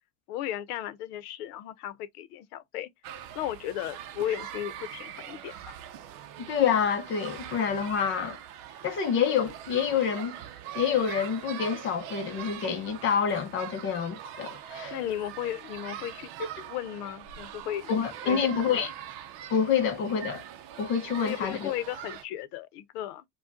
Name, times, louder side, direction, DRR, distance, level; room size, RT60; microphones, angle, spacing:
voice 1, 0.3-2.9 3.3-5.7 14.9-16.3 16.7-17.9 18.2-18.8 21.2-23.2, left 12 dB, 75° left, 0.8 m, -35 dB
sound 1, 3.0-22.2, right 10 dB, 50° right, 0.7 m, -42 dB
voice 2, 6.4-8.4 8.8-10.4 10.7-15.0 17.9-18.9 19.5-20.4 20.8-21.7, left 7 dB, 25° left, 0.6 m, -27 dB
4.9 x 2.3 x 2.6 m
supercardioid pair, 165°, 46 cm